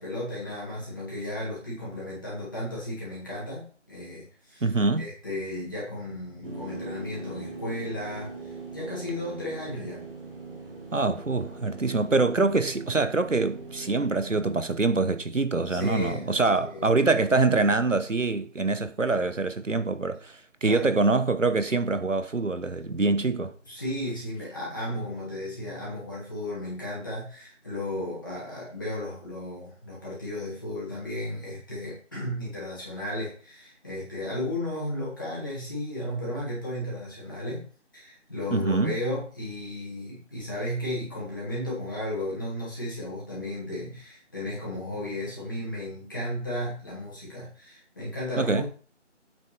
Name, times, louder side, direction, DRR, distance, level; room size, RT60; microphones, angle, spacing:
voice 1, 0.0-4.6 5.0-10.1 15.7-16.3 16.6-16.8 20.6-20.9 23.7-37.7 37.9-48.6, left 1 dB, 15° left, 2.8 m, -34 dB
voice 2, 4.6-5.1 10.9-23.5 38.5-39.0 48.4-48.6, right 3 dB, 85° right, 1.1 m, -25 dB
sound 1, 6.4-14.5, right 3 dB, 50° right, 2.3 m, -41 dB
8.2 x 6.4 x 4.6 m
figure-of-eight pair, 170°, 37 cm